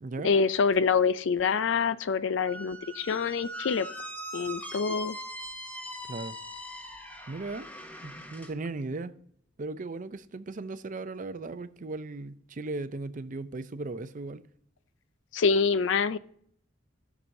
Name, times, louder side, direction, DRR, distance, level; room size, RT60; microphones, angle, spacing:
voice 1, 0.2-3.9 4.3-5.2 15.3-16.2, left 5 dB, 75° left, 0.4 m, -26 dB
Squeak, 2.4-8.5, equal, 10° left, 0.9 m, -41 dB
voice 2, 7.3-7.7 8.0-9.1 9.6-14.4, right 3 dB, 45° right, 0.5 m, -37 dB
16.5 x 6.1 x 2.7 m
head